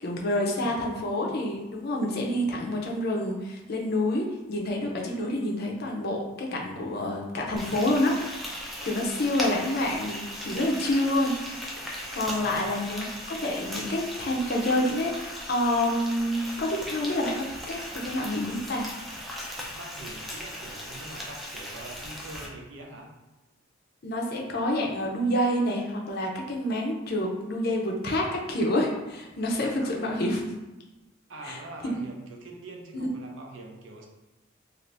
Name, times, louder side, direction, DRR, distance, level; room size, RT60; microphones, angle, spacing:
voice 1, 0.0-11.4 11.8-18.9 24.0-30.5 31.4-32.0, left 1 dB, 50° left, 0 dB, 0.5 m, -28 dB
voice 2, 0.6-1.4 12.2-12.8 19.8-23.1 31.3-34.1, right 2 dB, 65° right, 1 dB, 0.5 m, -44 dB
Frying (food), 7.6-22.5, equal, ahead, 0.4 m, -38 dB
2.6 x 2.5 x 3.3 m, 1.1 s
head